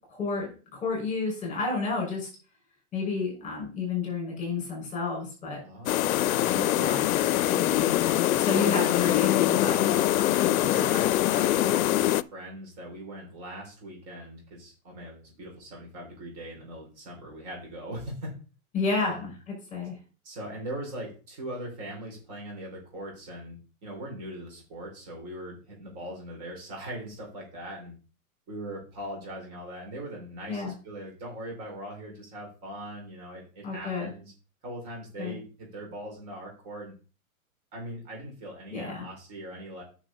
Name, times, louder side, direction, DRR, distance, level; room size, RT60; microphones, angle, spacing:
voice 1, 0.1-2.3 2.9-5.6 6.4-9.8 10.1-11.4 18.7-19.3 19.7-19.9 30.5-30.7 33.6-34.1 35.2-35.3 38.7-39.1, left 4 dB, 15° left, -1 dB, 5.5 m, -31 dB
voice 2, 5.6-6.9 9.5-18.3 19.0-19.3 20.2-23.6 23.8-27.9 28.5-34.3 34.6-36.9 37.7-39.8, right 1 dB, 35° right, -2 dB, 5.1 m, -40 dB
sound 1, 5.9-12.2, left 14 dB, 70° left, 0.6 m, -24 dB
9.8 x 6.1 x 4.1 m, 0.36 s
hypercardioid pair, 145°, 43 cm